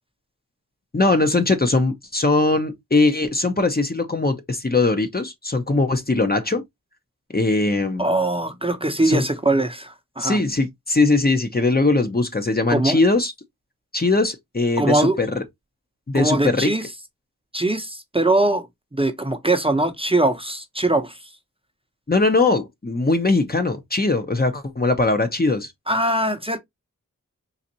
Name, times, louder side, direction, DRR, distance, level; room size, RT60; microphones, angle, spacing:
voice 1, 0.9-6.6 7.3-8.1 9.0-9.2 10.2-13.3 13.9-15.4 16.1-16.7 22.1-25.7, left 3 dB, 30° left, 0.8 m, -20 dB
voice 2, 8.0-10.4 12.7-13.0 14.8-15.2 16.1-16.9 17.5-18.7 19.0-21.2 25.9-26.6, right 2 dB, 15° right, 0.7 m, -21 dB
4.1 x 2.5 x 2.7 m
cardioid pair, 45°, 33 cm